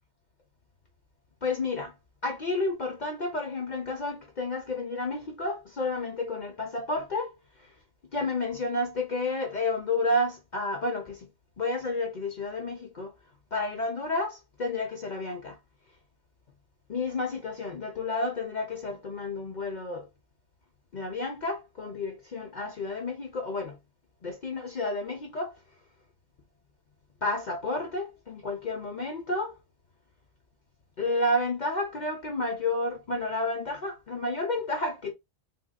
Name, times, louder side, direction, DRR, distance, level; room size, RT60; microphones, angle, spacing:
voice 1, 1.4-1.9 2.2-7.7 8.1-11.3 11.6-13.1 13.5-15.6 16.9-20.1 20.9-23.8 24.2-25.6 27.2-29.6 31.0-35.1, left 2 dB, 45° left, 0.8 m, -31 dB
3.7 x 2.5 x 2.2 m
omnidirectional pair, 1.1 m